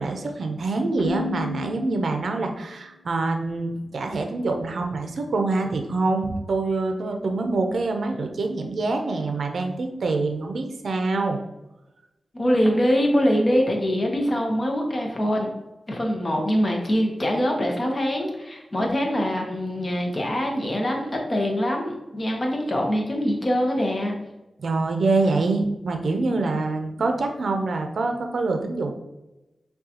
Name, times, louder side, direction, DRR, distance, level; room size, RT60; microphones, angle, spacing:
voice 1, 0.0-11.4 24.6-28.9, right 3 dB, 70° right, 4 dB, 0.5 m, -25 dB
Keyboard (musical), 1.0-2.8, left 5 dB, 65° left, 0.4 m, -34 dB
voice 2, 12.3-15.5 15.9-24.2, equal, 25° left, 1 dB, 0.7 m, -23 dB
6.3 x 2.3 x 2.8 m, 1.0 s
wide cardioid pair, 155°, 0 cm